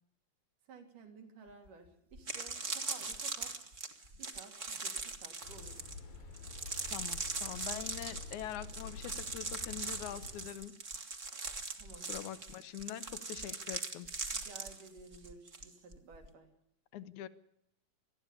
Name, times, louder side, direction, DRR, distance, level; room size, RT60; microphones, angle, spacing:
voice 1, 0.7-3.5 4.2-5.9 11.7-12.1 14.3-16.5, right 4 dB, 65° right, 6 dB, 4.6 m, -55 dB
sound 1, 1.7-1.8 2.1-15.7 15.9-16.3, right 4 dB, 30° right, 1.6 m, -41 dB
sound 2, 5.4-10.5, left 5 dB, 85° left, 4.6 m, -49 dB
voice 2, 6.9-10.8 12.1-14.1 16.9-17.3, left 11 dB, 70° left, 15 dB, 2.2 m, -44 dB
21.5 x 14.0 x 9.7 m, 0.77 s
omnidirectional pair, 4.0 m